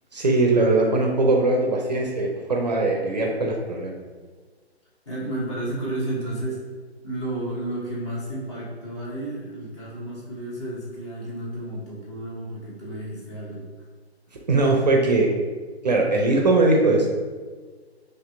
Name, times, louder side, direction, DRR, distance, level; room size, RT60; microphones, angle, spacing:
voice 1, 0.1-4.0 14.5-15.3 15.8-17.2, right 2 dB, 40° right, 0 dB, 0.4 m, -20 dB
voice 2, 5.1-6.6 7.0-13.9, right 1 dB, 25° left, -6 dB, 0.7 m, -32 dB
4.0 x 2.6 x 2.5 m, 1.4 s
figure-of-eight pair, 130°, 33 cm